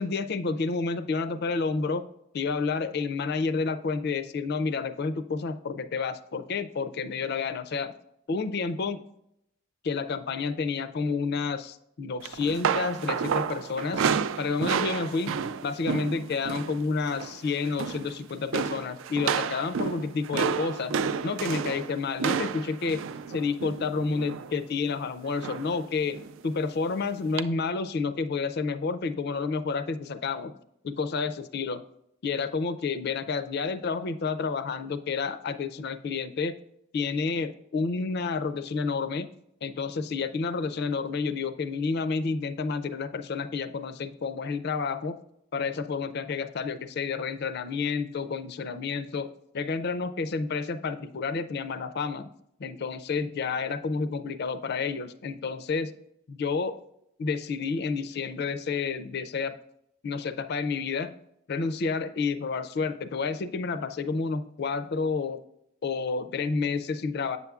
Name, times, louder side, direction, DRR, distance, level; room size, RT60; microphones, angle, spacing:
voice 1, 0.0-2.1 2.3-7.9 8.3-9.1 9.8-14.1 14.4-15.3 15.6-20.9 21.2-23.0 23.3-30.5 30.8-31.8 32.2-36.6 36.9-39.3 39.6-45.2 45.5-49.3 49.5-52.3 52.6-55.9 56.3-56.8 57.2-59.6 60.0-61.2 61.5-65.4 65.8-67.4, left 4 dB, 50° left, 12 dB, 0.4 m, -30 dB
sound 1, 12.2-16.8 17.0-17.4 17.7-18.1 18.5-24.5 25.4-25.8 26.1-26.3 27.4-27.5, right 6 dB, 65° right, 0.4 m, -30 dB
8.3 x 6.9 x 2.3 m, 0.77 s
head